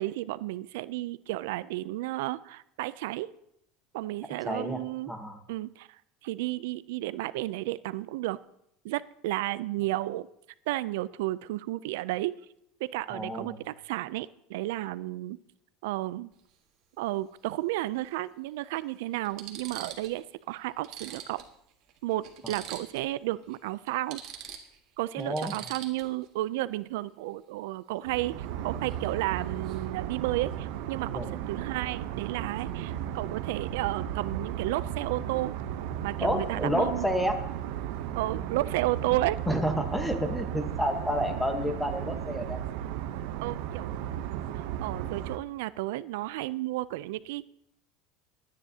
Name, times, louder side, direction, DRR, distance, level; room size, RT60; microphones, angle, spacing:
voice 1, 0.0-3.3 3.9-5.1 5.5-8.4 8.8-10.3 10.7-12.4 12.8-15.4 15.8-16.3 17.0-21.4 22.0-24.2 25.0-35.5 36.0-37.0 38.1-39.4 43.4-47.5, right 17 dB, 85° right, 17 dB, 0.3 m, -32 dB
voice 2, 4.4-4.8 5.1-5.4 13.1-13.6 22.4-22.5 25.2-25.6 31.1-31.3 36.2-37.4 39.5-42.6, equal, 5° left, 6 dB, 1.1 m, -29 dB
sound 1, 16.3-16.5 18.0-18.1 18.7-18.8 19.2-20.2 20.5-20.6 20.8-23.1 23.4-23.6 23.9-26.3 28.9-29.1 29.4-29.8, right 9 dB, 50° right, 1.5 m, -44 dB
sound 2, 28.0-45.4, right 10 dB, 70° right, 0.7 m, -35 dB
21.5 x 9.7 x 2.8 m, 0.77 s
cardioid pair, 165°, 0 cm